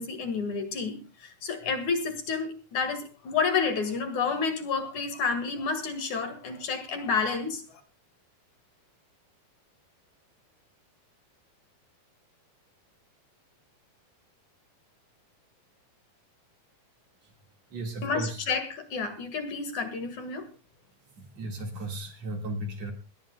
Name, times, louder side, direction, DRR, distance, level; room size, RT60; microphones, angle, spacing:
voice 1, 0.0-7.8 18.0-20.5, left 5 dB, 60° left, 8 dB, 2.8 m, -30 dB
voice 2, 17.7-18.4 21.2-22.9, right 1 dB, 50° right, 2 dB, 2.8 m, -35 dB
21.0 x 18.0 x 2.3 m, 0.31 s
omnidirectional pair, 4.3 m